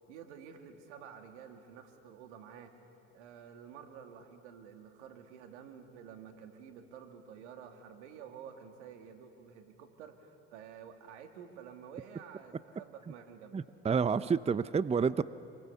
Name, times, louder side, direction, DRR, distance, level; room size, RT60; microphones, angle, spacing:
voice 1, 0.1-2.7 3.1-13.6, right 7 dB, 85° right, 5 dB, 2.4 m, -50 dB
voice 2, 13.5-15.2, right 6 dB, 20° right, 16 dB, 0.6 m, -29 dB
28.0 x 23.5 x 7.1 m, 2.7 s
hypercardioid pair, 70°, 34 cm